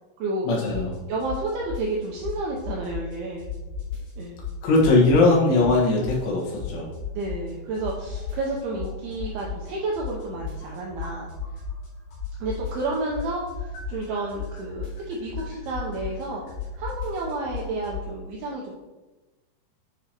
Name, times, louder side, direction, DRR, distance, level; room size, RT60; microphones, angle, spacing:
voice 1, 0.4-1.0 4.6-6.9, left 2 dB, 85° left, -4 dB, 4.0 m, -20 dB
sound 1, 0.7-0.9 1.2-3.1 3.4-5.3 5.6-7.5 7.7-11.9 12.1-18.0, left 6 dB, 65° left, 3.9 m, -34 dB
voice 2, 1.1-3.5 4.2-4.4 7.1-11.3 12.4-16.4 16.8-18.7, right 2 dB, 80° right, -2 dB, 2.2 m, -31 dB
9.2 x 5.0 x 2.9 m, 1.1 s
omnidirectional pair, 5.4 m